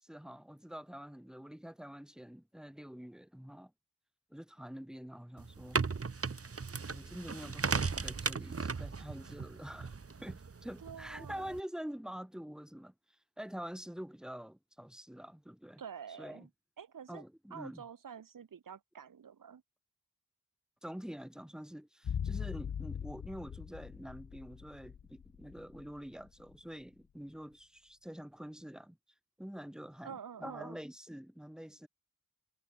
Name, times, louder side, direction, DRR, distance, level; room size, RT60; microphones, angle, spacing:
voice 1, 0.0-3.7 4.3-5.9 6.9-9.9 10.2-15.8 16.2-16.5 17.1-17.8 20.8-29.0 29.4-31.9, equal, ahead, 1.8 m, -46 dB
sound 1, 5.4-11.6, right 5 dB, 45° right, 2.3 m, -37 dB
voice 2, 10.8-11.6 15.8-16.5 16.8-17.2 17.5-19.6 30.0-30.8, right 7 dB, 85° right, 1.9 m, -48 dB
sound 2, 22.0-26.3 26.5-26.6, left 8 dB, 65° left, 1.0 m, -41 dB
wide cardioid pair, 110°, 32 cm